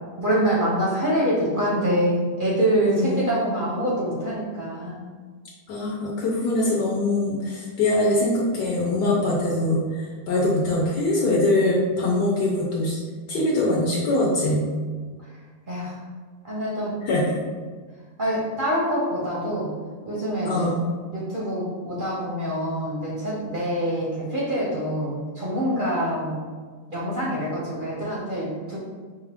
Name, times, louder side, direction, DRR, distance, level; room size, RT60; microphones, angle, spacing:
voice 1, 0.2-5.0 15.7-16.0 16.4-17.0 18.2-19.7 20.0-20.7 21.1-26.4 26.9-28.8, equal, 45° right, -6 dB, 0.7 m, -25 dB
voice 2, 2.8-3.2 5.7-13.0 13.3-14.7 17.0-17.4 20.4-20.8, left 2 dB, 70° left, -4 dB, 1.2 m, -23 dB
5.4 x 2.4 x 3.5 m, 1.5 s
omnidirectional pair, 2.0 m